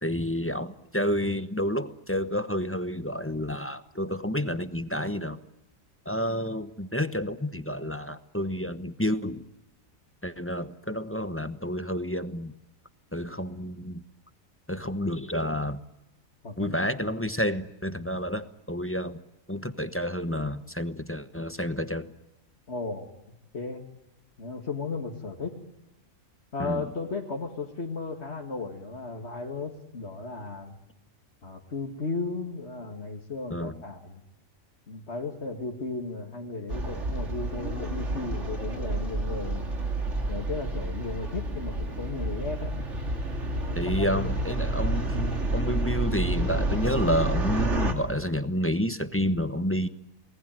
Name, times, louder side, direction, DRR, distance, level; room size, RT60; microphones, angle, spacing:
voice 1, 0.0-5.4 6.0-9.5 10.2-12.5 13.1-14.0 14.7-15.8 16.6-19.2 19.5-22.1 26.6-26.8 33.5-33.8 43.8-49.9, equal, 10° left, 10 dB, 0.9 m, -30 dB
voice 2, 16.4-16.8 22.7-23.1 23.5-23.8 24.4-25.5 26.5-30.7 31.4-34.2 34.9-39.7 40.3-42.7 43.7-44.3, left 3 dB, 55° left, 0 dB, 2.4 m, -35 dB
sound 1, 36.7-47.9, right 2 dB, 60° right, 3.1 m, -29 dB
28.5 x 20.0 x 9.1 m, 0.95 s
omnidirectional pair, 1.4 m